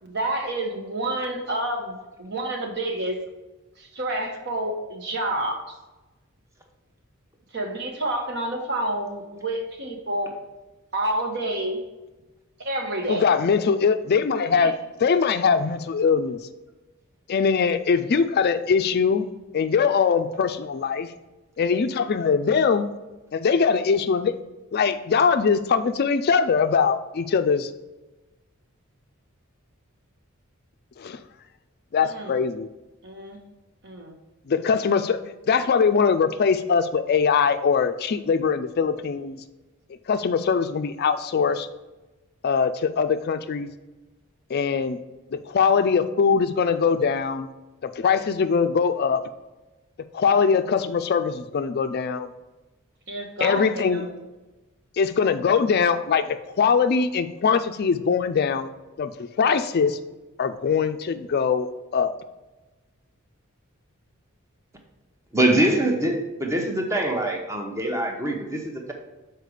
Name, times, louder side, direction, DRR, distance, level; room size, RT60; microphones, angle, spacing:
voice 1, 0.0-3.2 3.8-5.6 7.5-10.3 10.9-11.8 12.6-13.3 14.5-14.7 32.0-32.3 33.0-33.4 33.8-34.2 53.1-54.2, right 1 dB, 55° right, 2 dB, 1.2 m, -29 dB
voice 2, 13.1-16.4 17.3-19.3 19.5-21.1 21.6-22.9 23.3-24.4 24.7-27.7 31.0-31.2 31.9-32.7 34.5-35.2 35.5-39.4 40.1-41.7 42.4-43.7 44.5-45.0 45.3-47.5 47.8-49.2 50.1-52.3 53.4-54.0 55.0-58.7 59.0-60.0 60.4-61.7 61.9-62.1, left 6 dB, 50° left, 10 dB, 0.4 m, -22 dB
voice 3, 65.3-68.9, right 1 dB, 15° right, 2 dB, 0.9 m, -24 dB
6.6 x 4.6 x 4.9 m, 1.1 s
head